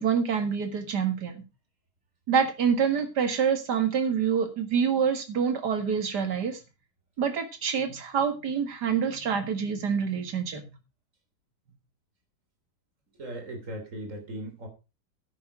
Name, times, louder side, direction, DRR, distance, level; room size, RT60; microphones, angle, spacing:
voice 1, 0.0-1.4 2.3-6.6 7.2-10.6, right 7 dB, 85° right, 8 dB, 2.4 m, -26 dB
voice 2, 13.2-14.7, right 1 dB, 50° right, 4 dB, 3.7 m, -38 dB
10.5 x 8.9 x 4.9 m, 0.29 s
omnidirectional pair, 1.7 m